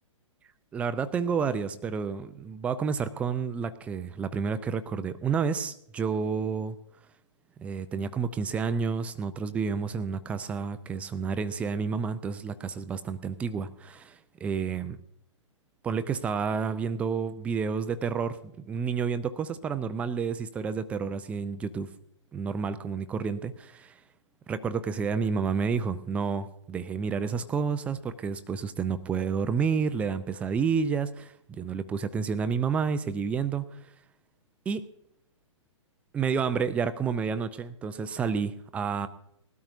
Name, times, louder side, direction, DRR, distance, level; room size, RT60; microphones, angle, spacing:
voice 1, 0.7-6.8 7.6-15.0 15.8-21.9 22.3-24.0 24.5-33.8 34.7-34.9 36.1-39.1, right 6 dB, 10° right, 12 dB, 0.4 m, -30 dB
19.5 x 13.0 x 2.6 m, 0.73 s
figure-of-eight pair, 120°, 17 cm